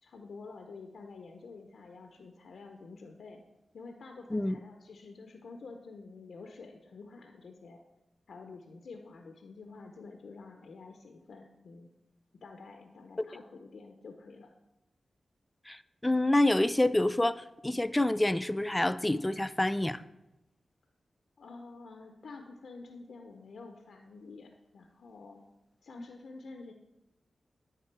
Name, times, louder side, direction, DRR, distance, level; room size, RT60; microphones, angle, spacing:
voice 1, 0.0-3.4 3.7-7.8 8.3-11.9 12.4-14.5 21.4-25.4 25.8-26.7, left 4 dB, 80° left, 4 dB, 0.6 m, -49 dB
voice 2, 15.7-20.0, left 1 dB, 15° left, 14 dB, 0.3 m, -27 dB
9.6 x 3.6 x 4.6 m, 0.94 s
cardioid pair, 55°, 0 cm